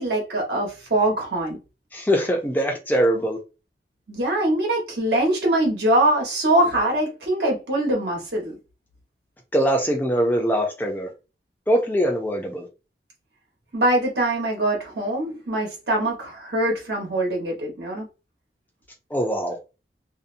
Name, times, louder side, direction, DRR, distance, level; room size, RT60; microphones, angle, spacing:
voice 1, 0.0-1.6 4.1-8.5 13.7-18.1, right 1 dB, 70° right, 1.1 m, -23 dB
voice 2, 1.9-3.4 9.5-11.1 11.7-12.7 19.1-19.6, equal, 10° left, 0.4 m, -22 dB
2.7 x 2.0 x 2.5 m
head